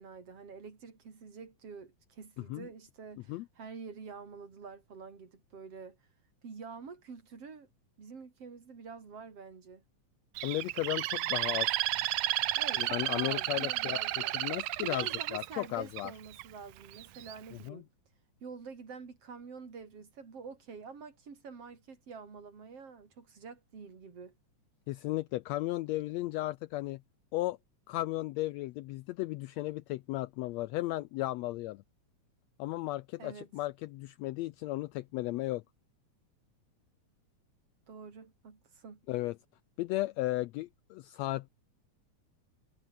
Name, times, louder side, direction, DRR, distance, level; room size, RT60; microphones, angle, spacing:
voice 1, 0.0-6.0 6.4-7.7 8.0-9.8 12.6-14.3 14.8-17.9 18.4-24.4 33.2-33.5 37.9-39.0, right 5 dB, 50° right, 4.7 m, -47 dB
voice 2, 10.4-11.7 12.8-14.0 14.3-15.1 15.3-16.1 17.6-17.8 24.9-27.0 27.3-27.6 27.9-31.8 32.6-35.6 39.1-39.4 39.8-41.5, left 17 dB, 85° left, 1.5 m, -35 dB
Bird, 10.4-16.4 17.0-17.4, right 17 dB, 85° right, 2.4 m, -32 dB
omnidirectional pair, 3.6 m